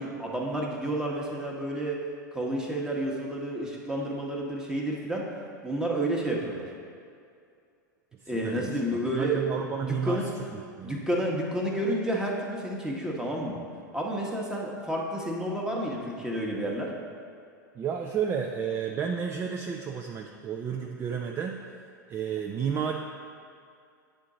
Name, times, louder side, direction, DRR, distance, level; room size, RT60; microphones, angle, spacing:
voice 1, 0.0-2.0 2.3-5.2 5.6-6.6 8.3-10.3 10.8-13.6 13.9-16.9, right 1 dB, 5° right, -2 dB, 1.0 m, -30 dB
voice 2, 8.2-10.2 10.5-11.0 17.7-21.6 22.1-22.9, right 7 dB, 25° right, 2 dB, 0.4 m, -32 dB
8.8 x 3.8 x 3.7 m, 2.4 s
hypercardioid pair, 90°, 10 cm